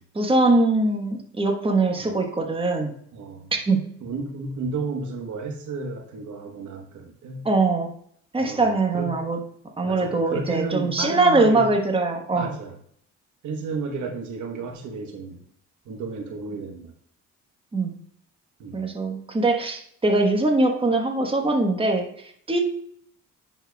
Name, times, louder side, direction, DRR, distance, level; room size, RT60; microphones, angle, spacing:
voice 1, 0.1-2.9 3.7-3.8 7.4-7.9 8.3-9.4 9.8-12.5 17.7-18.0 18.7-22.6, right 2 dB, 20° right, 2 dB, 1.2 m, -22 dB
voice 2, 3.1-3.5 4.0-7.5 8.4-9.2 9.8-11.7 12.3-12.7 13.4-15.4 15.8-16.9 18.6-18.9, right 4 dB, 75° right, 3 dB, 1.2 m, -32 dB
10.5 x 4.5 x 2.3 m, 0.64 s
cardioid pair, 90°, 30 cm